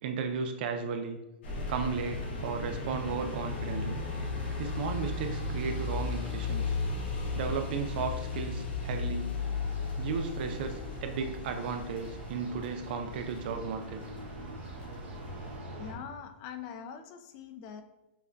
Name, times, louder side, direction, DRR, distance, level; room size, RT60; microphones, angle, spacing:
voice 1, 0.0-1.2 1.7-4.0 4.6-6.7 7.3-9.3 10.0-14.0, right 5 dB, 60° right, 6 dB, 0.4 m, -34 dB
sound 1, 1.4-15.6, left 3 dB, 75° left, 1.5 m, -36 dB
sound 2, 9.4-15.9, right 1 dB, 85° right, 1.3 m, -44 dB
voice 2, 15.8-17.8, left 7 dB, 40° left, 8 dB, 0.4 m, -43 dB
5.6 x 2.5 x 2.2 m, 0.98 s
hypercardioid pair, 130°, 6 cm